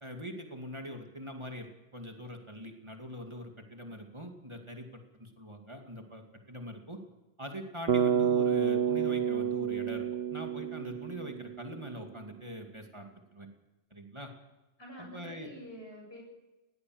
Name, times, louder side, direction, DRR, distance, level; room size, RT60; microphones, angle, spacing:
voice 1, 0.0-7.0 7.4-13.5 13.9-14.3 15.0-15.5, equal, 25° right, 2 dB, 2.6 m, -43 dB
Bass guitar, 7.9-12.0, right 8 dB, 75° right, 1.4 m, -29 dB
voice 2, 14.8-16.2, equal, 75° left, 1 dB, 8.2 m, -47 dB
20.5 x 17.0 x 8.0 m, 1.1 s
omnidirectional pair, 1.0 m